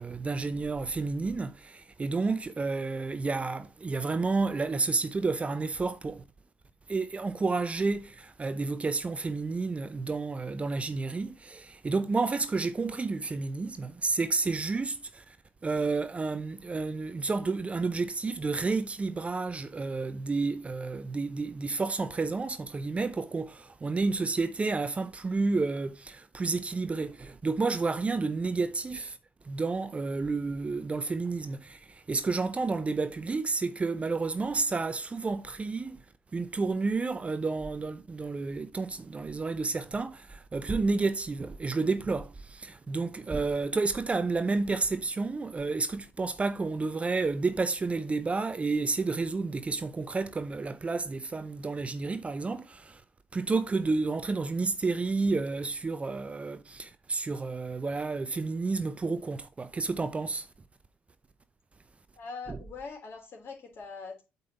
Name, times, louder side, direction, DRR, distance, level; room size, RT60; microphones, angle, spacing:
voice 1, 0.0-6.2 6.9-15.4 15.6-29.2 29.4-36.0 36.3-53.0 53.3-60.5 62.5-62.6, right 3 dB, 25° right, 0.6 m, -30 dB
voice 2, 62.2-64.2, left 4 dB, 45° left, 3.3 m, -42 dB
8.4 x 5.4 x 4.1 m
figure-of-eight pair, 50°, 5 cm